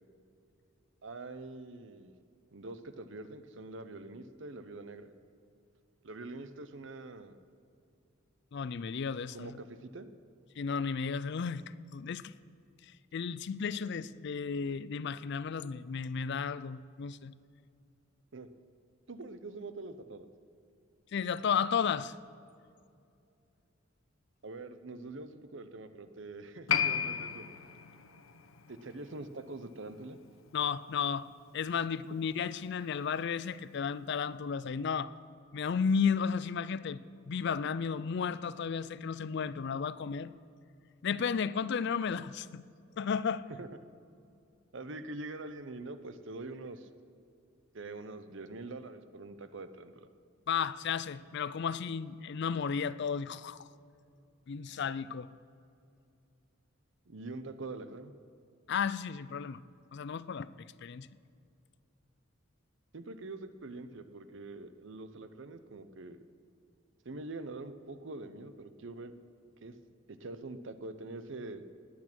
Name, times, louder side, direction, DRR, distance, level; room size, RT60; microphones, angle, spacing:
voice 1, 1.0-2.1 2.5-5.1 6.0-7.4 9.3-10.1 18.3-18.5 19.1-20.3 24.4-27.4 28.7-30.2 43.6-43.7 44.7-46.9 47.7-50.1 57.1-58.1 62.9-66.2 67.0-69.1 69.6-69.7 70.1-71.6, right 2 dB, 65° right, 0.8 m, -44 dB
voice 2, 8.5-9.6 10.6-11.6 11.9-12.3 13.1-17.3 21.1-22.1 30.5-35.1 35.5-37.0 37.3-40.3 41.0-42.6 43.0-43.5 50.5-53.7 54.5-55.3 58.7-59.6 59.9-61.1, left 6 dB, 55° left, 0.4 m, -33 dB
Piano, 26.7-33.7 33.9-34.0, left 8 dB, 85° left, 0.8 m, -37 dB
19.5 x 8.4 x 6.1 m
head